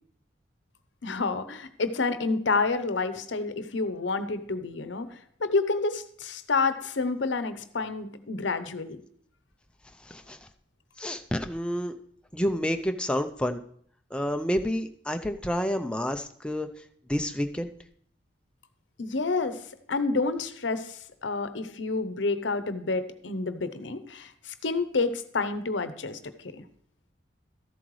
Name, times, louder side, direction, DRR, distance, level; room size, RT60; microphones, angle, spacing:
voice 1, 1.0-9.0 19.0-19.6 19.9-26.2 26.5-26.6, left 3 dB, 75° left, 11 dB, 0.7 m, -29 dB
voice 2, 10.1-10.4 11.0-11.9 12.3-13.6 14.1-16.7 17.1-17.7, equal, 5° left, 6 dB, 0.4 m, -29 dB
13.5 x 7.7 x 3.1 m, 0.62 s
head